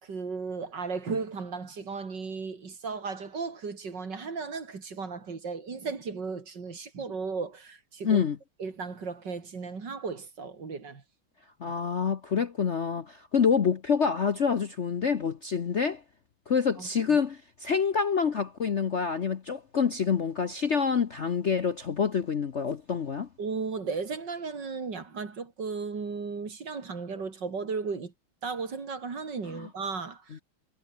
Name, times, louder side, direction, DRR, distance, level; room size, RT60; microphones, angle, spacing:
voice 1, 0.0-8.2 8.6-11.0 16.8-17.2 23.4-28.1 28.4-30.2, right 4 dB, 60° right, 3.5 m, -35 dB
voice 2, 8.0-8.4 11.6-16.0 16.5-23.3 29.5-29.7 30.3-30.4, left 6 dB, 45° left, 1.0 m, -27 dB
omnidirectional pair, 2.2 m